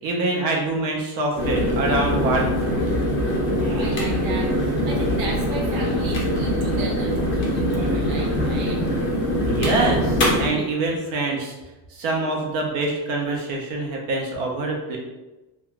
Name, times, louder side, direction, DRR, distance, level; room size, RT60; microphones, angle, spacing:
voice 1, 0.0-2.8 9.5-11.5 11.9-15.0, right 2 dB, 45° right, 0 dB, 0.7 m, -25 dB
sound 1, 1.3-10.5, equal, 25° left, 0.6 m, -23 dB
voice 2, 3.6-8.8, right 2 dB, 80° right, -2 dB, 1.0 m, -35 dB
3.1 x 2.2 x 2.4 m, 1.1 s
cardioid pair, 160°, 48 cm